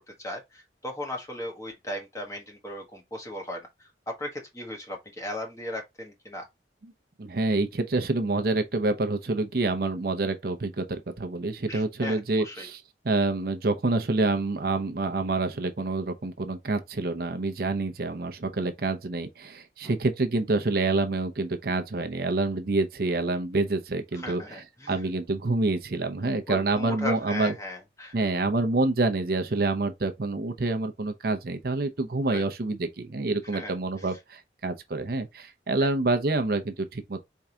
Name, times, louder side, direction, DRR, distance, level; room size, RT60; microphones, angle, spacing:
voice 1, 0.2-6.5 11.7-12.7 24.1-25.0 26.5-28.2 32.3-32.4 33.5-34.1 35.8-35.9, left 1 dB, 15° left, 1.2 m, -37 dB
voice 2, 7.2-27.5 28.1-37.2, right 2 dB, 55° right, 0.7 m, -27 dB
4.7 x 3.5 x 2.7 m
head